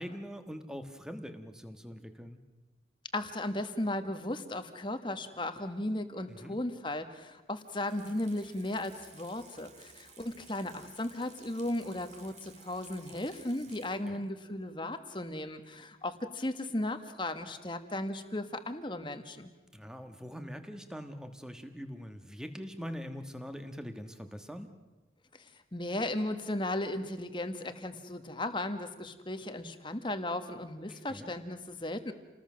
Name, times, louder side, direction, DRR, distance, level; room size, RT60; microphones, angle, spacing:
voice 1, 0.0-2.4 6.3-6.6 14.1-14.2 19.7-24.7 30.9-31.3, equal, 5° right, 7 dB, 1.4 m, -43 dB
voice 2, 3.1-19.5 25.7-32.1, left 1 dB, 25° left, 8 dB, 1.4 m, -36 dB
Water tap faucet / Sink (filling or washing), 7.6-14.3 14.7-14.8, right 5 dB, 40° right, 2.1 m, -56 dB
28.5 x 19.5 x 6.3 m, 1.2 s
head